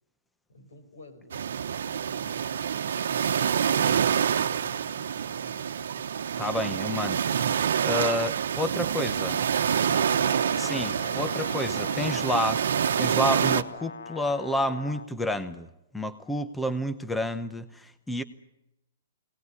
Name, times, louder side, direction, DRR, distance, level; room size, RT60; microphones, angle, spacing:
voice 1, 0.5-1.4 1.8-2.6 2.9-6.1, left 3 dB, 90° left, 4 dB, 5.6 m, -52 dB
sound 1, 1.3-13.6, right 8 dB, 75° right, 1.1 m, -27 dB
voice 2, 6.4-7.2 7.8-9.4 10.6-12.6 13.0-15.7 15.9-18.2, left 1 dB, 5° left, 12 dB, 0.8 m, -29 dB
Brass instrument, 9.8-15.1, left 4 dB, 75° left, 1.1 m, -41 dB
22.0 x 19.0 x 9.7 m, 0.86 s
hypercardioid pair, 155°, 0 cm